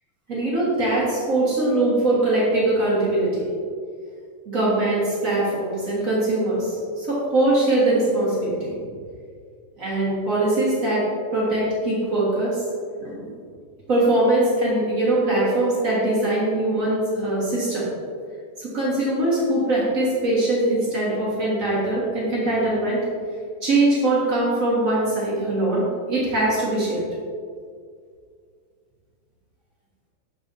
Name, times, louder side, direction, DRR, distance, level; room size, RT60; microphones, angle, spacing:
voice 1, 0.3-3.4 4.4-8.9 9.8-11.0 11.3-12.6 13.0-13.3 13.9-17.9 18.6-23.0 23.6-27.0, right 2 dB, 45° right, -7 dB, 1.1 m, -22 dB
6.9 x 6.7 x 2.6 m, 2.1 s
omnidirectional pair, 3.8 m